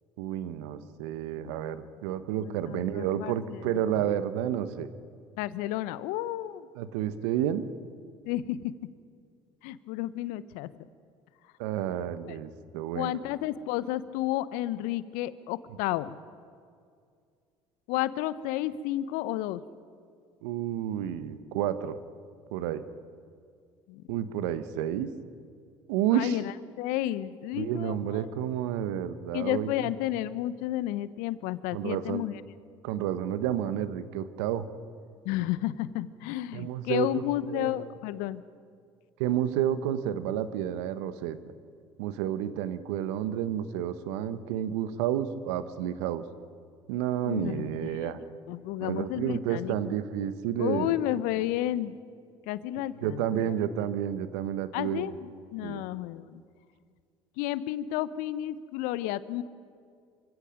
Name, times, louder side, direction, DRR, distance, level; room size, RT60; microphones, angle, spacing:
voice 1, 0.2-4.9 6.7-7.6 11.6-13.2 20.4-22.0 22.5-22.8 24.1-25.1 25.9-26.4 27.5-29.9 31.7-32.2 32.8-34.6 36.5-37.2 37.5-37.9 39.2-41.4 42.0-46.2 46.9-48.2 48.8-51.0 53.0-55.1 55.6-55.8, right 10 dB, 70° right, 12 dB, 1.3 m, -30 dB
voice 2, 2.4-3.6 4.0-4.1 5.4-6.7 8.3-8.9 9.6-10.8 13.0-16.2 17.9-19.6 23.9-24.0 26.1-26.5 26.8-28.2 29.3-32.3 35.2-38.4 47.2-48.1 48.5-49.7 50.6-52.0 52.5-53.5 54.7-56.4 57.4-59.4, left 14 dB, 65° left, 16 dB, 0.9 m, -32 dB
27.0 x 25.0 x 5.3 m, 2.2 s
hypercardioid pair, 60°, 15 cm